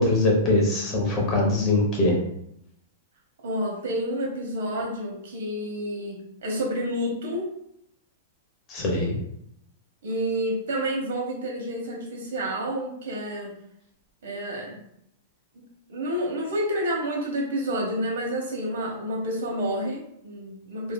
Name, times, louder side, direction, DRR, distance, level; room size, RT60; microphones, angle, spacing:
voice 1, 0.0-2.1 8.7-9.2, left 2 dB, 20° left, -2 dB, 0.7 m, -22 dB
voice 2, 3.4-7.5 10.0-13.5 14.2-14.8 15.5-15.6 15.9-20.9, equal, 70° right, -1 dB, 0.9 m, -29 dB
3.1 x 2.5 x 2.2 m, 0.75 s
supercardioid pair, 170°, 0 cm